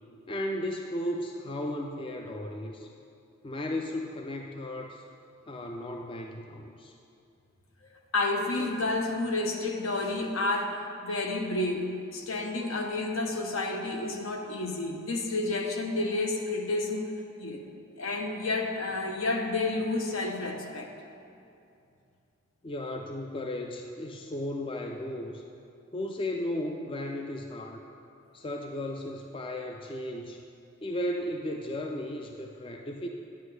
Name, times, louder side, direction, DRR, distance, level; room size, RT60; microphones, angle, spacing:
voice 1, 0.3-2.9 3.4-5.0 5.5-6.9 22.6-25.4 25.9-27.8 28.3-30.4 30.8-33.1, left 1 dB, 25° left, 3 dB, 0.3 m, -35 dB
voice 2, 8.1-11.9 12.1-17.1 17.4-17.6 18.0-20.9, left 2 dB, 70° left, 3 dB, 0.9 m, -30 dB
10.5 x 8.1 x 3.2 m, 2.6 s
head